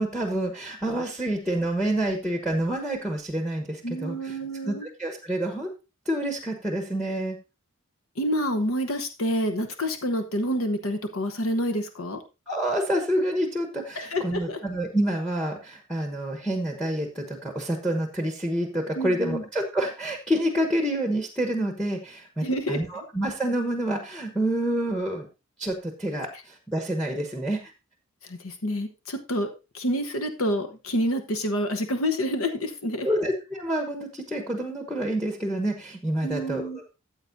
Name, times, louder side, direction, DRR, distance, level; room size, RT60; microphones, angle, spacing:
voice 1, 0.0-4.4 4.6-5.7 6.0-7.4 12.5-25.3 25.6-27.6 33.0-36.9, right 1 dB, ahead, 4 dB, 1.1 m, -28 dB
voice 2, 3.8-4.9 8.2-12.2 13.9-14.6 18.9-19.4 22.4-22.8 28.2-33.2 36.2-36.8, equal, 70° left, 7 dB, 1.0 m, -28 dB
14.0 x 7.7 x 2.7 m, 0.28 s
head